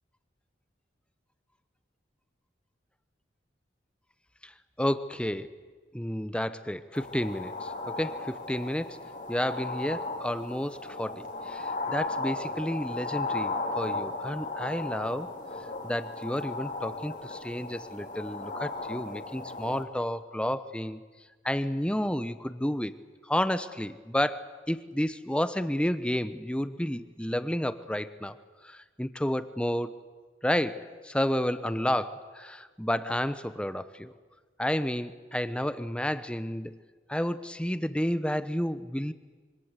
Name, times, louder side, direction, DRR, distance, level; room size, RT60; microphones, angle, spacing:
voice 1, 4.8-5.5 5.9-9.0 9.3-15.3 15.8-21.0 21.4-22.9 23.2-28.4 28.6-29.9 30.4-34.1 34.6-36.8 37.1-39.1, equal, 5° left, 13 dB, 0.9 m, -31 dB
sound 1, 6.9-19.8, left 3 dB, 45° left, 3.4 m, -36 dB
26.0 x 25.0 x 8.2 m, 1.4 s
head